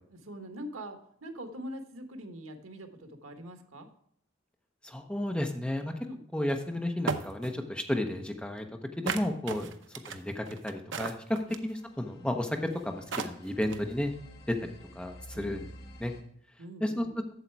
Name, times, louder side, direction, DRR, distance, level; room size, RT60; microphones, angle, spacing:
voice 1, 0.1-3.9 6.0-6.3 11.5-11.6 15.3-15.7 16.6-17.1, equal, 85° right, 7 dB, 1.3 m, -43 dB
voice 2, 4.8-5.9 6.3-8.6 9.0-9.7 10.1-11.1 11.6-14.1 14.5-14.6 14.9-15.7 16.0-16.1 16.8-17.1, left 1 dB, 5° left, 3 dB, 0.8 m, -32 dB
sound 1, 6.5-6.6 7.1-7.5 9.1-11.7 12.7-12.8 13.1-13.9, right 5 dB, 60° right, 0.7 m, -35 dB
sound 2, 10.8-16.2, equal, 50° left, 1.5 m, -51 dB
8.2 x 7.2 x 4.5 m, 0.68 s
head